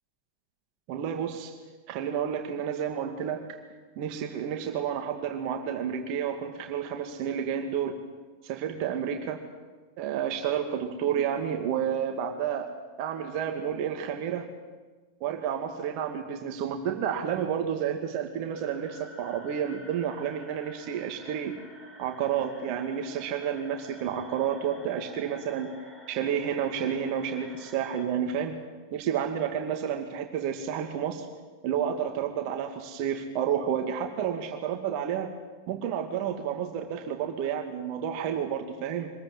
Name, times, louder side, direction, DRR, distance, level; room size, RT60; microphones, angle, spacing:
voice 1, 0.9-1.5 1.9-3.6 4.0-8.0 8.4-9.4 10.0-12.7 13.0-14.5 15.2-21.6 22.0-25.7 26.1-28.6 28.9-31.3 31.6-35.3 35.7-39.1, right 8 dB, 45° right, 4 dB, 2.3 m, -30 dB
sound 1, 18.5-28.1, equal, 15° left, 6.3 m, -50 dB
25.0 x 21.0 x 7.6 m, 1.3 s
figure-of-eight pair, 90°, 0 cm